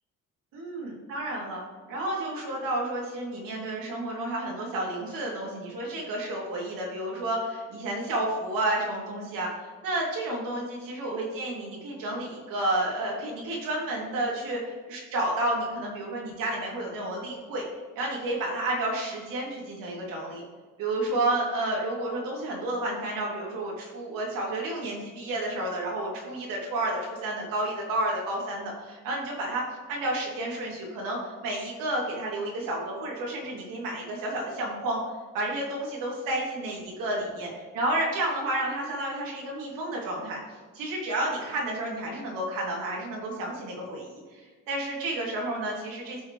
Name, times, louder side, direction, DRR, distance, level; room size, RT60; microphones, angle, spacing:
voice 1, 0.5-1.6 1.9-17.6 17.9-20.4 20.8-35.0 35.3-46.2, right 1 dB, 90° right, -3 dB, 3.3 m, -31 dB
14.5 x 6.2 x 3.4 m, 1.4 s
cardioid pair, 145°, 32 cm